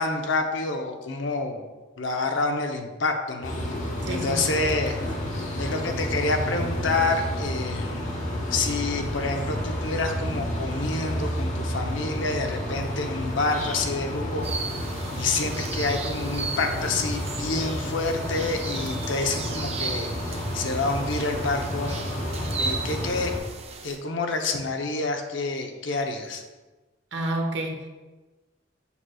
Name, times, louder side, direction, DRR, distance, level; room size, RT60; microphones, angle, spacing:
voice 1, 0.0-1.6 2.0-3.5 4.1-5.0 5.6-8.1 8.5-14.5 15.2-22.0 22.6-23.3 23.8-26.4, left 3 dB, 70° left, 4 dB, 0.7 m, -28 dB
sound 1, 3.4-23.4, equal, 40° left, 1.1 m, -31 dB
voice 2, 4.0-4.8 18.2-18.6 27.1-27.9, right 1 dB, 65° right, 2 dB, 1.0 m, -31 dB
sound 2, 14.4-24.0, right 4 dB, 35° right, 0.5 m, -36 dB
6.9 x 6.2 x 2.3 m, 1.2 s
head